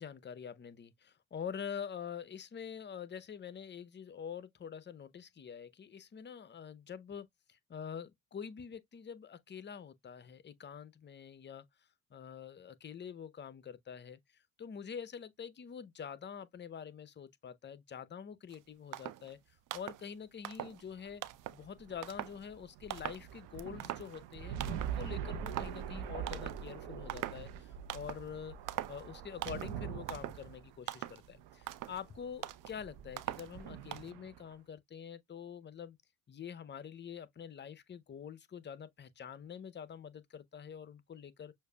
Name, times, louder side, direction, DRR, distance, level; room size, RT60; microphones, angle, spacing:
voice 1, 0.0-11.6 12.1-19.4 19.7-21.2 21.5-28.6 28.9-36.0 36.3-41.5, left 7 dB, 25° left, 0.7 m, -46 dB
sound 1, 18.5-18.6 18.9-19.3 19.7-20.1 20.4-20.9 21.2-21.7 22.0-22.4 22.9-23.3 23.6-24.3 24.6-25.0 25.5-25.8 26.3-26.7 27.1-27.5 27.9-28.3 28.7-29.0 29.4-29.8 30.1-30.4 30.9-31.3 31.6-32.0 32.4-32.7 33.2-33.5 33.9-34.1, right 14 dB, 45° right, 0.6 m, -42 dB
sound 2, 20.9-34.5, right 8 dB, 65° right, 0.9 m, -44 dB
6.4 x 2.6 x 2.3 m
hypercardioid pair, 65°, 43 cm